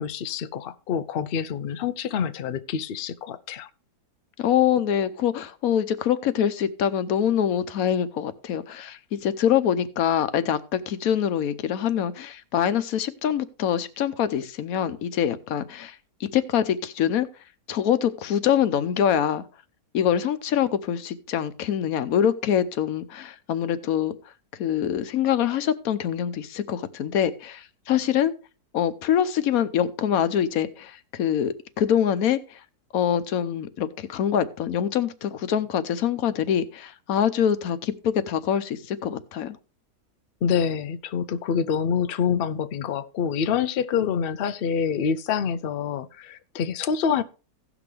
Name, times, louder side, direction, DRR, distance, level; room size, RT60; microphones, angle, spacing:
voice 1, 0.0-3.7 40.4-47.2, left 7 dB, 90° left, 0.5 m, -26 dB
voice 2, 4.4-17.3 17.7-19.4 19.9-24.1 24.5-28.3 28.7-32.6 32.9-39.6, left 9 dB, 65° left, 1.1 m, -24 dB
16.5 x 6.1 x 3.3 m
omnidirectional pair, 1.7 m